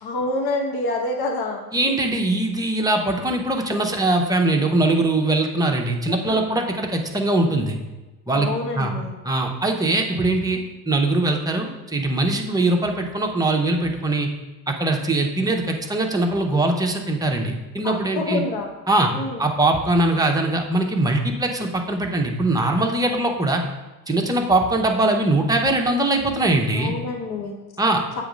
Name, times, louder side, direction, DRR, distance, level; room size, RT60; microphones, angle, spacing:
voice 1, 0.0-1.6 6.1-6.5 8.3-9.1 17.8-18.7 19.1-19.4 26.7-27.6, left 2 dB, 70° left, 1 dB, 1.1 m, -27 dB
voice 2, 1.7-7.8 8.3-8.5 8.7-8.9 9.2-14.3 14.7-18.4 18.9-19.1 19.4-23.6 24.1-26.9 27.8-28.0, right 2 dB, 10° right, 1 dB, 0.7 m, -21 dB
7.8 x 3.1 x 5.0 m, 1.2 s
cardioid pair, 125°, 39 cm